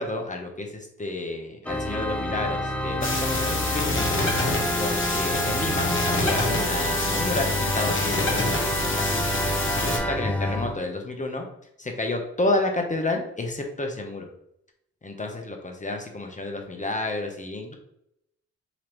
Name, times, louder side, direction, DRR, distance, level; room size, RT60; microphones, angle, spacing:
voice 1, 0.0-4.0 4.8-9.4 9.8-11.5 11.8-14.3 15.0-17.7, left 2 dB, 25° left, 2 dB, 0.9 m, -30 dB
Organ, 1.6-10.8, equal, 5° left, 0.6 m, -28 dB
sound 1, 3.0-10.0, left 2 dB, 40° left, 1.3 m, -27 dB
3.9 x 3.0 x 3.0 m, 0.76 s
supercardioid pair, 45°, 30 cm